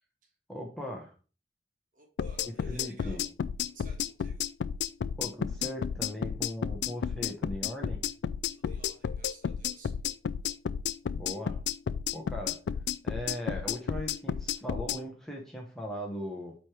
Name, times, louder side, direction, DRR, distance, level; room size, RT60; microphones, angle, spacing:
voice 1, 0.5-1.1 2.4-3.2 5.2-8.0 11.0-11.6 12.1-12.6 13.0-16.5, equal, ahead, -1 dB, 1.0 m, -39 dB
voice 2, 1.9-3.3 3.6-4.4 8.5-9.9, right 3 dB, 45° right, 2 dB, 1.7 m, -56 dB
sound 1, 2.2-15.0, left 8 dB, 75° left, 0.3 m, -32 dB
8.2 x 3.4 x 4.4 m, 0.37 s
head